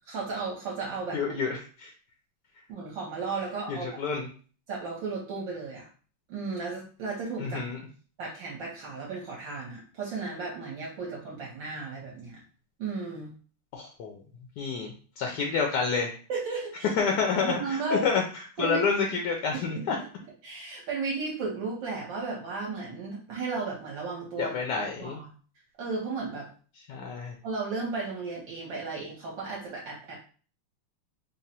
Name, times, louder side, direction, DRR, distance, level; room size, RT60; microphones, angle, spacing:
voice 1, 0.1-1.3 2.7-4.0 4.7-5.8 6.3-7.7 8.2-12.4 12.8-13.3 16.3-16.9 17.4-18.0 18.6-18.8 19.5-19.6 20.0-20.1 20.4-24.5 25.0-25.3 25.8-26.5 27.4-30.2, right 4 dB, 65° right, -3 dB, 1.4 m, -34 dB
voice 2, 1.1-1.9 3.7-4.3 7.4-7.8 13.7-14.2 14.6-16.2 17.0-20.0 24.4-25.2 26.9-27.3, left 5 dB, 75° left, 1 dB, 0.9 m, -29 dB
3.7 x 2.0 x 4.1 m, 0.40 s
omnidirectional pair, 2.4 m